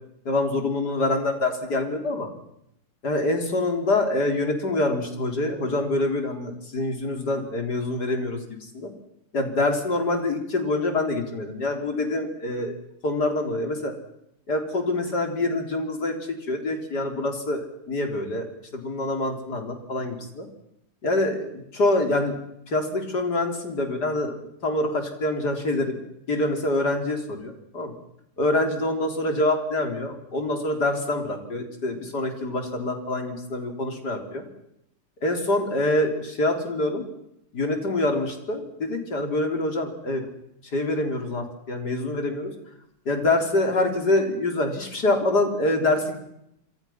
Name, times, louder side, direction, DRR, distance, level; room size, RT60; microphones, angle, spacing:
voice 1, 0.3-2.3 3.0-8.9 9.3-12.8 13.0-13.9 14.5-16.1 16.5-18.5 18.7-20.5 21.0-22.4 22.7-24.4 24.6-26.0 26.3-27.9 28.4-34.4 35.2-37.1 37.5-40.3 40.7-42.5 43.1-46.2, left 2 dB, 80° left, 4 dB, 4.4 m, -25 dB
28.0 x 26.0 x 5.9 m, 0.77 s
omnidirectional pair, 1.7 m